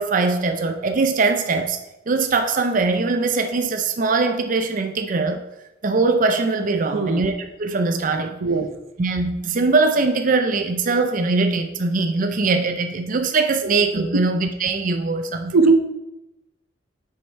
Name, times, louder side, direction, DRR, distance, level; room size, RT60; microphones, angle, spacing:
voice 1, 0.0-1.8 2.1-5.4 5.8-8.4 9.0-15.5, right 3 dB, 40° right, 6 dB, 0.5 m, -21 dB
voice 2, 6.9-7.3 8.4-8.7 13.6-14.2 15.5-15.7, right 4 dB, 90° right, 8 dB, 0.7 m, -20 dB
6.2 x 5.5 x 4.5 m, 0.93 s
head